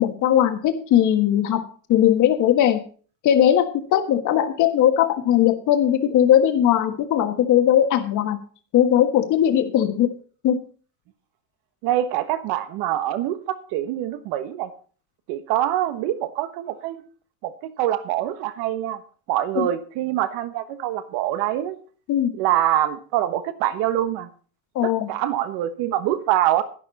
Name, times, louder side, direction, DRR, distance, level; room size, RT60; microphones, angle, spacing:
voice 1, 0.0-1.6 1.9-2.8 3.2-8.4 8.7-10.1 10.4-10.6 19.5-19.7 22.1-22.3 24.7-25.1, left 10 dB, 40° left, 7 dB, 1.6 m, -19 dB
voice 2, 11.8-14.7 15.3-17.0 17.4-19.0 19.3-21.8 22.3-24.3 24.8-26.6, right 12 dB, 55° right, 11 dB, 1.3 m, -24 dB
11.5 x 11.0 x 4.1 m, 0.41 s
cardioid pair, 160°, 46 cm